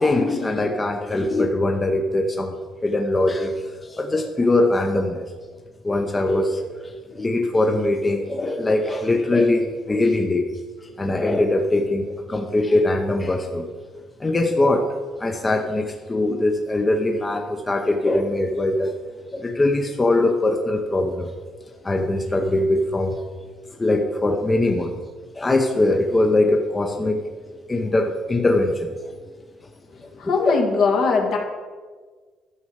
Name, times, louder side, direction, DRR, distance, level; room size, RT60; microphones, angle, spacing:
voice 1, 0.0-2.5 2.8-5.2 5.5-5.6 5.8-10.5 10.8-13.7 14.2-18.9 19.3-21.4 21.8-23.2 23.8-24.9 25.3-27.2 27.7-29.1 30.5-30.6, left 2 dB, 20° left, 3 dB, 0.8 m, -22 dB
voice 2, 30.2-31.4, left 4 dB, 65° left, 1 dB, 1.8 m, -20 dB
11.0 x 6.2 x 4.8 m, 1.5 s
cardioid pair, 95°, 0 cm